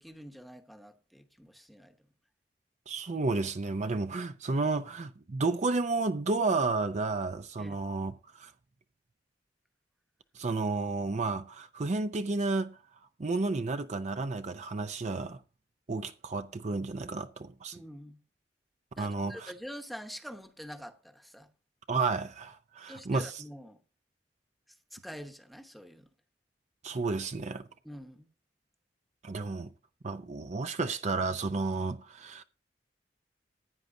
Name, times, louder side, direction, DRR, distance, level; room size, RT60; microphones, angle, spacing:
voice 1, 0.0-2.0 7.6-7.8 17.7-18.2 19.0-21.5 22.9-23.8 24.9-26.1 27.8-28.3, equal, ahead, 1.0 m, -46 dB
voice 2, 2.9-8.5 10.3-12.8 13.2-15.4 15.9-17.8 19.0-19.5 21.9-23.3 26.8-27.6 29.2-29.7 30.0-32.4, right 3 dB, 40° right, 0.5 m, -31 dB
15.0 x 9.2 x 2.7 m
head